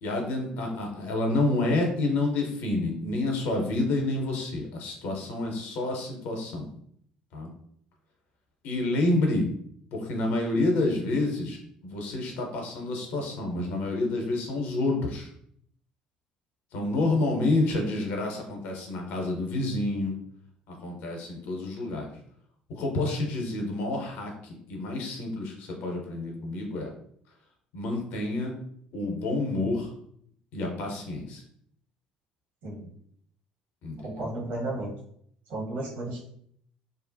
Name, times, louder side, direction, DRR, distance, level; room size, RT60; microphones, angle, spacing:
voice 1, 0.0-6.7 7.3-7.5 8.6-9.5 9.9-15.3 16.7-20.1 20.7-22.1 22.7-26.9 27.7-28.5 28.9-29.9 30.5-31.4 33.8-34.3, left 2 dB, 55° left, 1 dB, 0.7 m, -28 dB
voice 2, 34.0-34.9 35.5-36.2, right 2 dB, 60° right, -3 dB, 1.0 m, -33 dB
2.6 x 2.1 x 2.6 m, 0.66 s
figure-of-eight pair, 55°, 4 cm